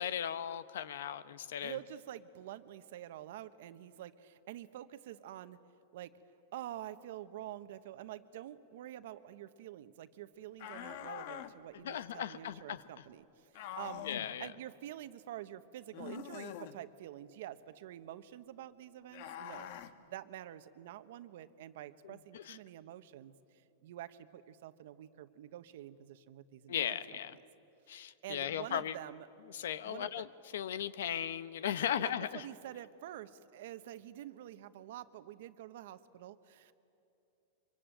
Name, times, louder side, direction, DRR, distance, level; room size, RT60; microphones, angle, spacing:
voice 1, 0.0-1.8 11.8-12.8 14.0-14.5 22.0-22.6 26.7-27.4 27.9-29.0 29.5-30.3 30.5-32.4, left 10 dB, 80° left, 15 dB, 1.0 m, -37 dB
voice 2, 1.6-5.6 5.9-6.1 6.5-14.1 14.4-19.7 20.1-27.2 28.2-29.3 29.8-30.1 32.0-36.7, right 12 dB, 65° right, 12 dB, 1.1 m, -47 dB
sound 1, 10.6-11.5 13.5-14.3 15.9-16.8 19.1-19.9, left 10 dB, 55° left, 1.3 m, -44 dB
25.0 x 23.5 x 9.0 m, 2.9 s
supercardioid pair, 155°, 0 cm